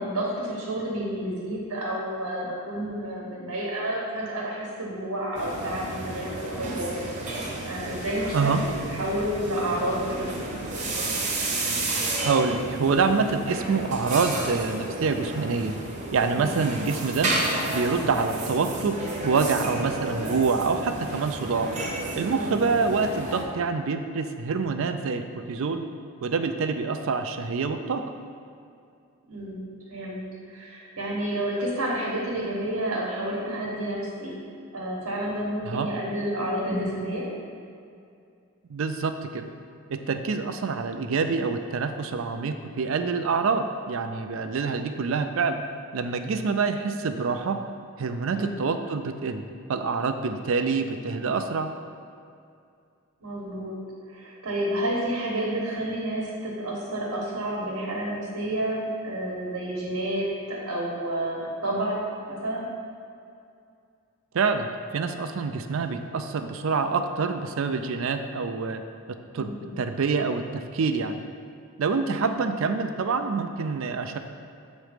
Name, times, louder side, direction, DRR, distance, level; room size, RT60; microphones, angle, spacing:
voice 1, 0.0-6.9 7.7-8.5 8.9-10.4 16.3-16.5 22.3-22.5 29.3-29.6 29.9-30.2 30.5-34.4 34.7-37.3 48.3-48.6 53.2-53.7 54.1-62.7 69.3-69.7, right 1 dB, 85° right, -4 dB, 1.2 m, -30 dB
sound 1, 5.3-23.4, right 2 dB, 35° right, 0.8 m, -32 dB
voice 2, 12.2-15.8 16.1-17.3 17.7-19.0 19.2-21.7 22.1-25.8 26.2-28.0 35.7-35.9 38.7-39.5 39.9-45.6 45.9-47.6 48.0-51.7 64.3-68.8 69.3-71.2 71.8-74.2, right 4 dB, 65° right, 7 dB, 0.4 m, -26 dB
7.3 x 3.1 x 5.0 m, 2.4 s
head